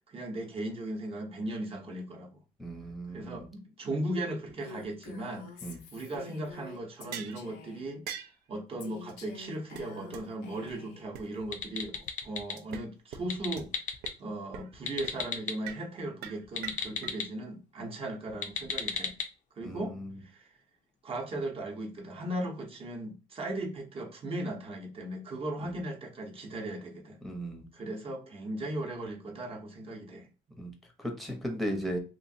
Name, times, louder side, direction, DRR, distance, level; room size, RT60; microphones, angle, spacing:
voice 1, 0.1-2.4 3.1-8.1 8.5-13.7 14.2-19.1 19.6-20.5 21.0-27.2 27.7-30.3, right 1 dB, 35° right, 0.8 m, -37 dB
voice 2, 2.6-3.5 5.6-5.8 19.6-20.1 25.6-25.8 27.2-27.7 30.6-30.7 31.0-32.0, equal, ahead, 0.7 m, -36 dB
Female speech woman speaking, 4.6-7.9 8.8-11.0, left 4 dB, 90° left, 0.7 m, -47 dB
sound 1, 7.1-7.4 8.1-8.4 9.1-9.2 9.4-9.5 9.8-9.9 10.1-10.2 10.7-10.8 11.1-11.2 12.6-12.8 13.1-13.2 13.6-13.7 14.0-14.1 14.5-14.7 15.0-15.2 15.6-15.8 16.2-17.1, right 8 dB, 75° right, 0.5 m, -41 dB
sound 2, 11.4-12.6 13.2-14.1 14.7-15.5 16.4-17.3 18.3-19.3, left 6 dB, 50° left, 0.5 m, -35 dB
2.9 x 2.5 x 2.7 m
cardioid pair, 110°, 17 cm